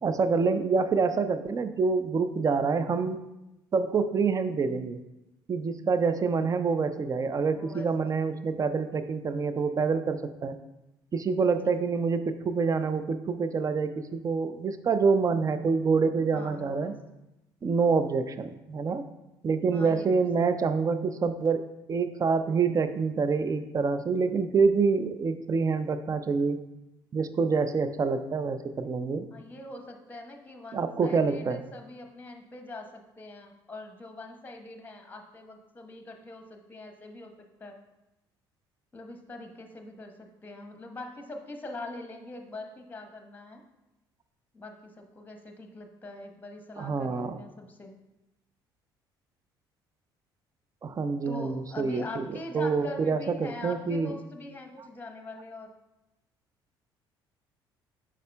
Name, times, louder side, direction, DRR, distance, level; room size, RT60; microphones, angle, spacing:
voice 1, 0.0-3.2 3.7-5.0 5.5-10.6 11.1-17.0 17.6-19.1 19.4-26.6 27.1-29.3 30.7-31.6 46.8-47.4 50.8-52.3 52.5-54.1, right 5 dB, 30° right, 11 dB, 0.5 m, -26 dB
voice 2, 7.5-8.3 11.3-11.4 11.6-11.7 16.1-16.9 19.7-20.1 29.3-37.8 38.9-43.6 44.5-47.9 51.3-55.7, left 2 dB, 15° left, 4 dB, 1.1 m, -43 dB
9.1 x 6.0 x 2.2 m, 0.95 s
figure-of-eight pair, 55°, 12 cm